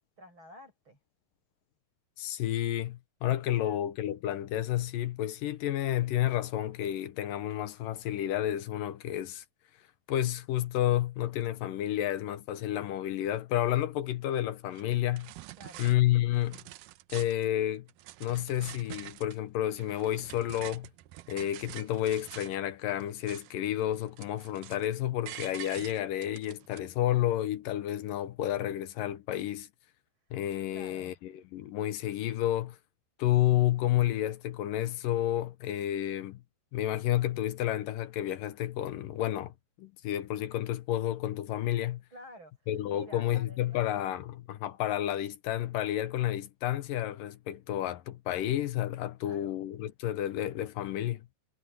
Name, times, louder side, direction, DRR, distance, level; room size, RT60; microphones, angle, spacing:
voice 1, 0.2-1.0 3.6-3.8 15.6-15.9 30.7-31.2 42.1-42.5 42.9-44.1 49.2-49.6, equal, 30° right, 8.3 m, -51 dB
voice 2, 2.2-9.4 10.1-15.3 15.8-16.6 17.1-17.9 18.2-20.9 21.3-29.7 30.3-32.8 33.2-36.4 36.7-39.5 39.8-42.0 42.7-51.2, left 12 dB, 75° left, 2.4 m, -30 dB
sound 1, 14.7-14.8 15.2-16.0 16.3-17.5 17.9-19.4 19.7-22.6 23.0-23.7 23.9-24.9 25.3-26.8, right 16 dB, 80° right, 2.0 m, -46 dB
omnidirectional pair, 4.3 m